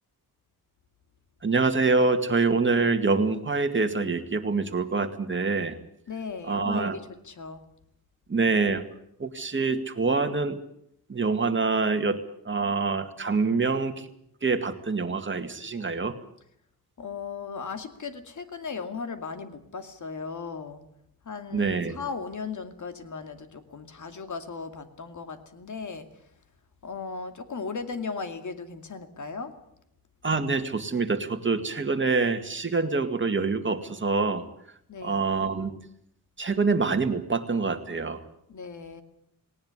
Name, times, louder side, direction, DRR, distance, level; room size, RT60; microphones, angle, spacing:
voice 1, 1.4-5.8 6.5-7.0 8.3-8.8 9.2-10.6 11.1-12.2 12.5-14.1 14.4-16.2 21.5-22.0 30.2-34.4 35.0-35.7 36.4-38.2, right 4 dB, 30° right, 7 dB, 2.1 m, -25 dB
voice 2, 6.1-7.6 17.0-20.8 21.2-26.2 26.8-29.6 34.9-35.2 38.5-39.0, left 5 dB, 55° left, 8 dB, 2.5 m, -37 dB
19.0 x 18.5 x 9.7 m, 0.73 s
wide cardioid pair, 120°, 36 cm